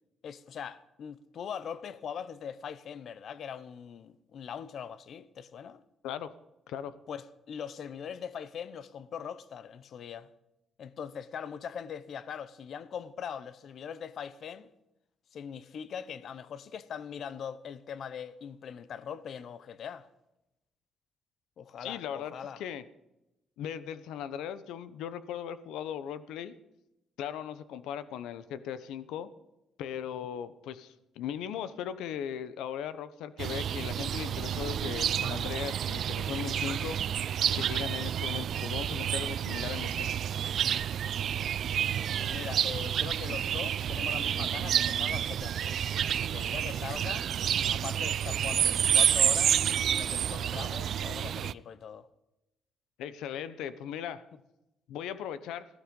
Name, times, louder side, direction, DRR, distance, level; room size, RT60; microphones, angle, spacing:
voice 1, 0.2-5.8 7.1-10.3 10.8-14.7 15.3-20.1 21.6-22.6 42.2-47.3 47.7-52.1, left 7 dB, 60° left, 0.9 m, -41 dB
voice 2, 6.0-6.4 6.7-6.9 21.8-22.8 23.6-26.5 27.2-29.3 29.8-40.1 53.0-54.2 54.9-55.7, left 9 dB, 90° left, 0.9 m, -38 dB
sound 1, 33.4-51.5, right 9 dB, 65° right, 0.4 m, -29 dB
16.0 x 13.0 x 5.3 m
cardioid pair, 90°, 0 cm